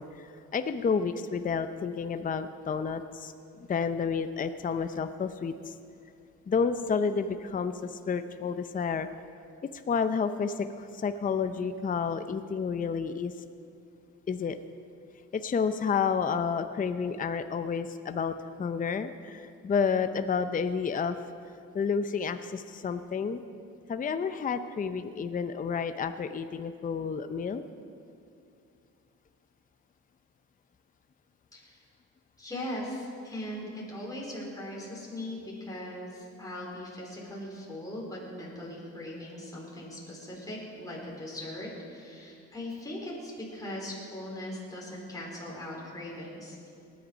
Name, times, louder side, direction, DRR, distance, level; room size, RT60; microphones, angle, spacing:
voice 1, 0.0-3.3 3.7-5.8 6.5-9.1 9.7-13.4 14.3-14.6 15.3-21.2 21.7-23.4 23.9-27.6, left 6 dB, 25° left, 10 dB, 0.6 m, -30 dB
voice 2, 31.5-31.8 32.4-46.6, left 1 dB, 10° left, -4 dB, 4.0 m, -39 dB
19.0 x 10.5 x 5.1 m, 2.5 s
cardioid pair, 90°, 30 cm